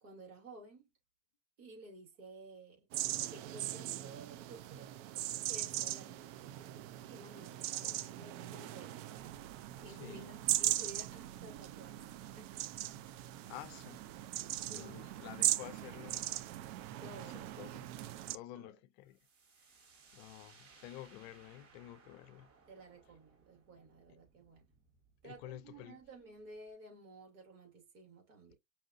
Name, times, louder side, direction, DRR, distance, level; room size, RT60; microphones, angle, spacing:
voice 1, 0.0-0.9 1.6-2.9 3.3-4.9 5.5-6.2 7.1-8.9 9.8-12.0 12.3-12.5 14.7-15.4 17.0-17.5 18.5-18.7 22.7-24.6 25.2-28.5, right 2 dB, 70° right, 2.8 m, -54 dB
sound 1, 2.9-18.4, right 14 dB, 50° right, 0.5 m, -39 dB
voice 2, 7.8-8.2 9.9-10.4 13.5-14.3 14.7-16.3 17.2-17.9 18.3-19.2 19.6-19.8 20.1-22.5 24.1-24.2 25.2-26.0, left 14 dB, 55° left, 0.6 m, -51 dB
sound 2, 19.1-26.7, right 5 dB, 35° right, 1.7 m, -64 dB
5.4 x 2.5 x 2.6 m
hypercardioid pair, 105°, 38 cm